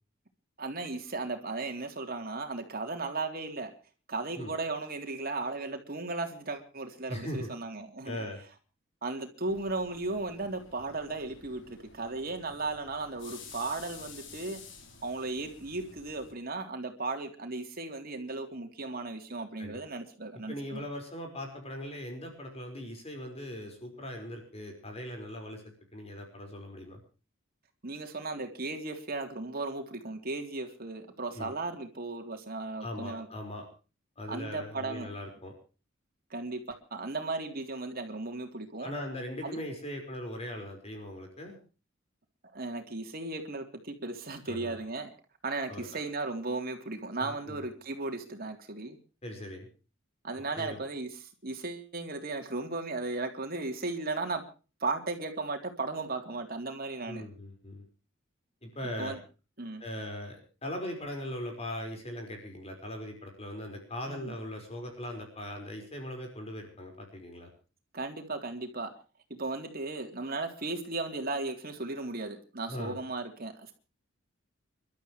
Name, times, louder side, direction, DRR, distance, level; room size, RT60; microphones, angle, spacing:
voice 1, 0.6-3.7 4.1-8.2 9.0-14.6 15.0-20.8 27.8-33.3 34.3-35.1 36.3-38.9 39.4-39.6 42.5-45.1 45.4-49.0 50.2-51.1 51.4-54.4 54.8-57.2 59.0-59.2 59.6-59.8 64.1-64.3 67.9-68.9 69.3-73.7, right 3 dB, 50° right, 5 dB, 3.5 m, -36 dB
voice 2, 7.1-7.5 8.0-8.4 19.6-19.8 20.5-27.0 31.3-31.5 32.8-33.7 34.2-35.5 38.8-41.6 44.5-44.8 45.7-45.9 47.2-47.6 49.2-49.7 50.5-50.8 57.0-57.8 58.6-59.1 59.8-67.5 72.7-73.0, left 1 dB, 30° left, 3 dB, 5.0 m, -40 dB
sound 1, 9.4-16.3, left 5 dB, 65° left, 4.5 m, -51 dB
29.5 x 13.0 x 3.3 m, 0.36 s
head